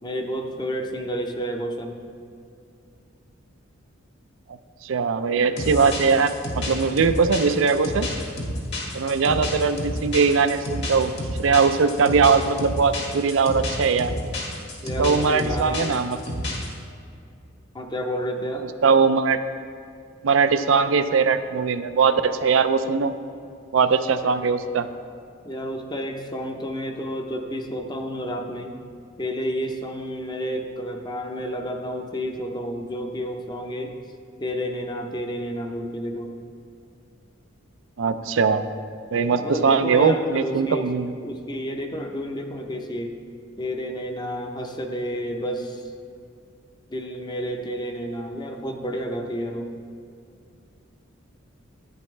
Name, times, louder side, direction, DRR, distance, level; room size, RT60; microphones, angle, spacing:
voice 1, 0.0-2.0 14.8-16.0 17.7-18.7 25.4-28.8 29.2-34.0 34.4-36.3 39.3-40.9 41.2-43.2 43.6-45.9 46.9-49.7, equal, 20° left, 4 dB, 0.7 m, -30 dB
voice 2, 4.8-8.1 8.9-11.1 11.4-14.1 15.0-16.2 18.8-19.4 20.2-23.1 23.7-24.9 38.0-38.7 39.1-41.1, right 5 dB, 70° right, 10 dB, 0.4 m, -20 dB
sound 1, 5.6-16.7, left 1 dB, 60° left, 1.8 m, -30 dB
10.5 x 9.3 x 3.3 m, 2.4 s
head